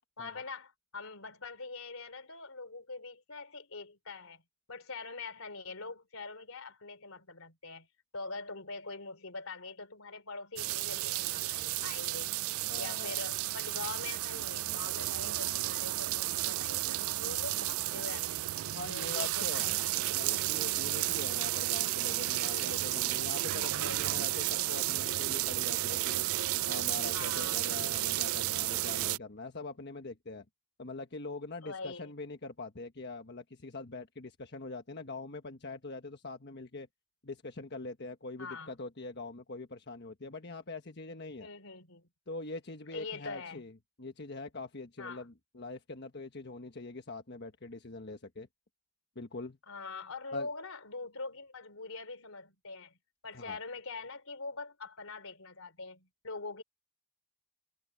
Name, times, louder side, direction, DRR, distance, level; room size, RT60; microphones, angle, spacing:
voice 1, 0.2-4.4 4.7-7.9 8.1-12.3 12.8-18.5 18.9-19.9 22.5-22.9 23.7-24.0 27.1-27.7 31.6-32.1 38.4-38.7 41.4-42.1 42.9-43.6 45.0-45.3 49.7-53.0 53.2-56.6, left 3 dB, 85° left, 3.3 m, -44 dB
sound 1, 10.6-29.2, right 16 dB, 85° right, 0.4 m, -32 dB
voice 2, 12.7-13.2 18.6-19.7 20.1-26.2 26.7-30.4 30.8-36.9 37.2-41.5 42.3-43.7 44.0-48.5 49.1-49.6 50.3-50.5 53.3-53.6, left 3 dB, 50° left, 1.3 m, -43 dB
head